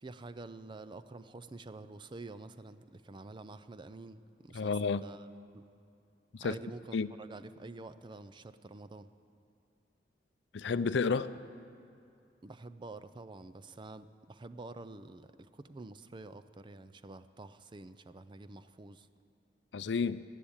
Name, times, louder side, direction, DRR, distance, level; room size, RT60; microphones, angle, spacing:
voice 1, 0.0-5.3 5.5-5.6 6.4-9.1 12.4-19.1, right 2 dB, 25° right, 0.4 m, -48 dB
voice 2, 4.5-5.0 6.3-6.6 6.9-7.1 10.5-11.3 19.7-20.2, left 5 dB, 75° left, 0.5 m, -31 dB
15.5 x 10.0 x 8.7 m
head